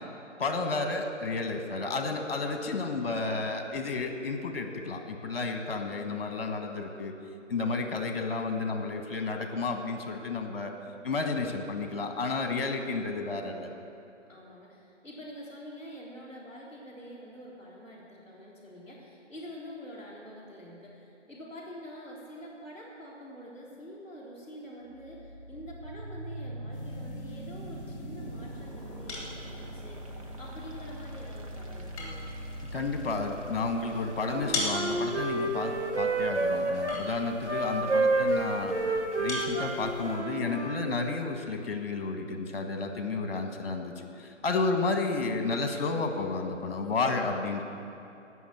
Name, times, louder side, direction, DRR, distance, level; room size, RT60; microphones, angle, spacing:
voice 1, 0.4-7.1 7.5-10.7 11.0-13.7 32.7-38.8 39.2-47.6, left 3 dB, 50° left, 5 dB, 1.6 m, -31 dB
voice 2, 2.6-3.1 14.3-32.3 38.0-38.8, equal, 5° right, -13 dB, 2.1 m, -46 dB
sound 1, 24.8-36.8, right 1 dB, 30° right, 0.9 m, -42 dB
sound 2, 26.7-40.2, left 2 dB, 25° left, 3.3 m, -42 dB
Wind instrument woodwind instrument, 34.0-37.0 37.4-40.8, right 2 dB, 65° right, 1.7 m, -29 dB
17.5 x 6.4 x 7.3 m, 2.7 s
figure-of-eight pair, 160°, 38 cm